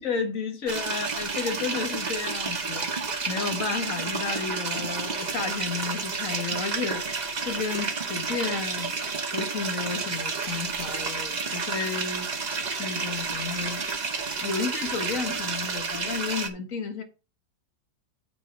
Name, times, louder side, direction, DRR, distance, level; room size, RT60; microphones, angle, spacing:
voice 1, 0.0-7.0 7.4-8.9 9.3-12.3 12.8-13.8 14.4-17.0, left 5 dB, 45° left, 1.7 m, -32 dB
sound 1, 0.7-16.5, right 4 dB, 40° right, 0.6 m, -30 dB
9.0 x 4.1 x 6.0 m
omnidirectional pair, 2.0 m